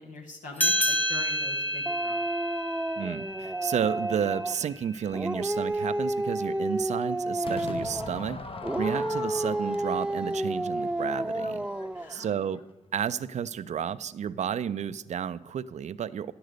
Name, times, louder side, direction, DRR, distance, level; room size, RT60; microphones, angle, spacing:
voice 1, 0.0-2.2 11.9-12.3, left 3 dB, 85° left, 1 dB, 1.1 m, -43 dB
sound 1, 0.6-5.5, left 1 dB, 15° left, 0.9 m, -31 dB
Dog, 1.9-4.7 5.1-8.2 8.6-12.2, right 1 dB, 10° right, 0.4 m, -30 dB
voice 2, 3.0-8.4 8.8-11.7 12.1-12.6 12.9-16.3, right 8 dB, 65° right, 16 dB, 0.4 m, -32 dB
Crowd / Fireworks, 7.4-12.7, left 4 dB, 45° left, 0.8 m, -42 dB
10.0 x 8.0 x 5.0 m, 1.0 s
supercardioid pair, 45°, 13 cm